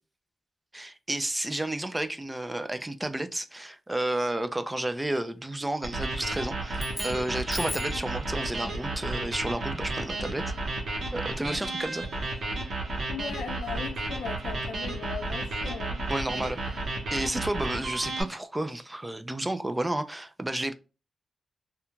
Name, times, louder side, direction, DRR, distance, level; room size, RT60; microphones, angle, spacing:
voice 1, 0.7-10.5 11.1-12.1 16.1-20.7, right 1 dB, 15° right, 0.3 m, -31 dB
sound 1, 5.8-18.2, right 2 dB, 65° right, 0.7 m, -32 dB
sound 2, 6.7-8.1, left 3 dB, 25° left, 0.6 m, -38 dB
voice 2, 13.1-16.0, left 6 dB, 85° left, 0.4 m, -38 dB
2.9 x 2.2 x 2.4 m
cardioid pair, 65°, 0 cm